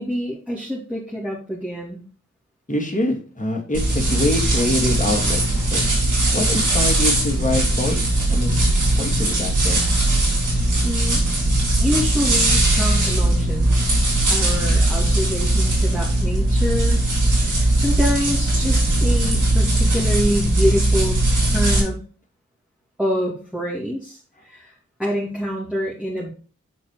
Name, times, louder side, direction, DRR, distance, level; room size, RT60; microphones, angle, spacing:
voice 1, 0.0-2.0 10.8-11.2 11.8-14.0 14.3-17.1 17.6-22.0 23.0-24.7 25.0-26.3, equal, 5° right, -5 dB, 2.5 m, -26 dB
voice 2, 2.7-5.8 6.3-8.0 8.3-8.6 9.0-9.9, left 1 dB, 25° left, -1 dB, 2.6 m, -25 dB
sound 1, 3.7-21.8, right 1 dB, 85° right, 3.7 m, -19 dB
7.2 x 4.4 x 5.0 m, 0.38 s
cardioid pair, 45°, 30 cm